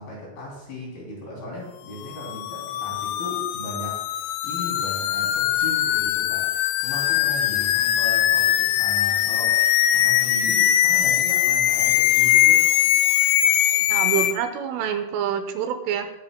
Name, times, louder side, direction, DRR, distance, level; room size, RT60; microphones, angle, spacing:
voice 1, 0.0-12.6, left 1 dB, 50° left, -4 dB, 4.6 m, -37 dB
sound 1, 2.1-14.3, left 12 dB, 85° left, 2.7 m, -21 dB
voice 2, 13.9-16.1, right 9 dB, 80° right, 7 dB, 3.2 m, -26 dB
20.0 x 9.3 x 2.2 m, 1.0 s
omnidirectional pair, 5.9 m